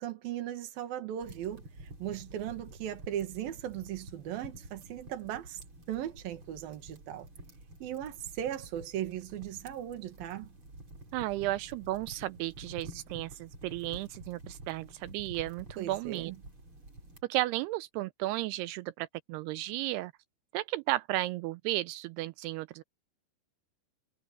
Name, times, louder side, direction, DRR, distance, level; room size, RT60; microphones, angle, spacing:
voice 1, 0.0-5.6 5.9-7.3 7.8-10.5 15.8-16.4, right 11 dB, 65° right, 3.4 m, -38 dB
sound 1, 1.2-17.2, right 1 dB, 30° right, 7.5 m, -50 dB
voice 2, 11.1-16.3 17.3-20.1 20.5-22.8, right 17 dB, 85° right, 2.4 m, -34 dB
omnidirectional pair, 4.9 m